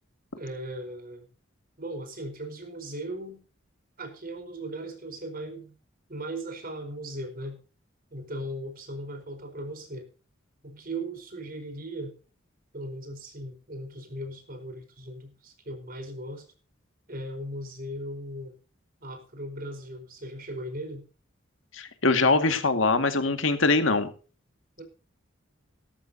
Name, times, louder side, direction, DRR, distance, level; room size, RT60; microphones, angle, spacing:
voice 1, 0.4-1.3 1.8-3.4 4.0-5.8 6.1-7.6 8.1-10.1 10.6-12.2 12.7-16.5 17.1-18.5 19.0-21.0 24.8-24.9, right 1 dB, 45° right, 5 dB, 4.6 m, -38 dB
voice 2, 21.7-24.1, left 3 dB, 80° left, 8 dB, 2.1 m, -23 dB
17.5 x 13.5 x 2.8 m, 0.37 s
head